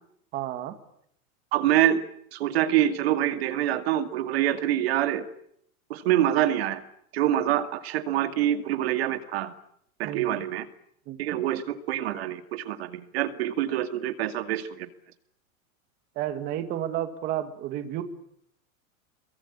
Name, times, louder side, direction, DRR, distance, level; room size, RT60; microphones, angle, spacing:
voice 1, 0.3-0.7 10.0-10.4 11.1-11.2 16.2-18.0, right 12 dB, 20° right, 8 dB, 2.1 m, -31 dB
voice 2, 1.5-2.0 2.3-5.2 5.9-6.8 7.1-9.5 10.0-10.7 11.2-14.9, right 12 dB, 45° right, 9 dB, 2.4 m, -25 dB
28.5 x 23.0 x 8.8 m, 0.70 s
supercardioid pair, 180°, 42 cm